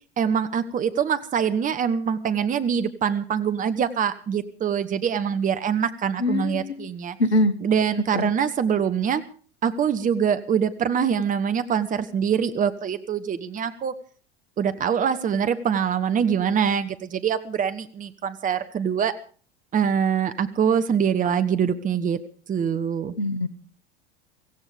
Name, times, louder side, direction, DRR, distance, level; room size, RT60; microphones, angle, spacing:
voice 1, 0.2-7.2 7.6-9.2 9.6-13.9 14.6-19.1 19.7-22.2 22.5-23.1, right 7 dB, 25° right, 11 dB, 1.1 m, -24 dB
voice 2, 6.2-6.9 7.2-7.6 8.1-8.3 23.2-23.5, left 1 dB, 80° left, 16 dB, 1.2 m, -23 dB
17.5 x 16.0 x 5.1 m, 0.42 s
figure-of-eight pair, 80°, 31 cm